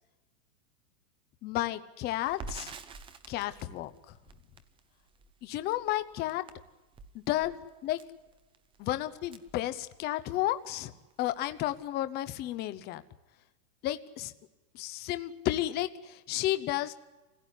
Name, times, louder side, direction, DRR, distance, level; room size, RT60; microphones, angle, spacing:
voice 1, 1.4-2.7 3.3-3.9 5.4-6.4 7.1-8.0 8.8-10.9 11.2-13.0 13.8-14.3 14.7-16.9, left 15 dB, 20° left, 12 dB, 0.8 m, -32 dB
Crackle, 2.3-10.3 10.7-10.8 11.1-11.8, right 4 dB, 10° right, 0.7 m, -49 dB
25.0 x 16.5 x 10.0 m, 1.1 s
hypercardioid pair, 145°, 47 cm